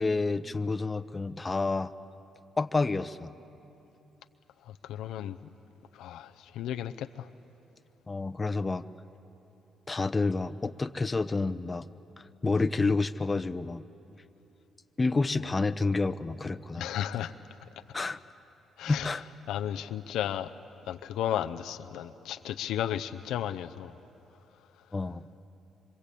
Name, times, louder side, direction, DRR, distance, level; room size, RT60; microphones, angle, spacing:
voice 1, 0.0-1.9 2.6-3.3 8.1-8.8 9.9-11.9 12.4-13.8 15.0-16.9 17.2-17.3 17.9-18.2 18.9-19.3 24.9-25.3, left 3 dB, 25° left, 10 dB, 0.9 m, -29 dB
voice 2, 4.9-5.4 6.0-7.2 16.8-17.3 18.8-19.1 19.5-20.5 20.9-23.9, left 11 dB, 85° left, 9 dB, 0.6 m, -33 dB
26.0 x 25.0 x 8.4 m, 3.0 s
supercardioid pair, 70°, 0 cm